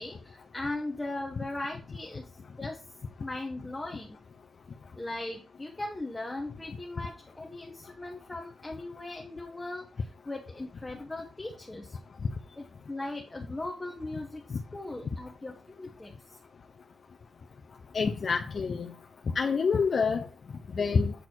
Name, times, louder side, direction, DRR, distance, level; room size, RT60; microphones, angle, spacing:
voice 1, 0.0-2.3 2.6-2.8 3.2-4.2 5.0-12.0 12.6-16.4, left 2 dB, 15° left, 0 dB, 1.1 m, -39 dB
voice 2, 17.9-18.9 19.4-20.3 20.7-21.1, left 5 dB, 50° left, 2 dB, 0.7 m, -27 dB
8.1 x 4.1 x 4.5 m, 0.37 s
wide cardioid pair, 145°, 0 cm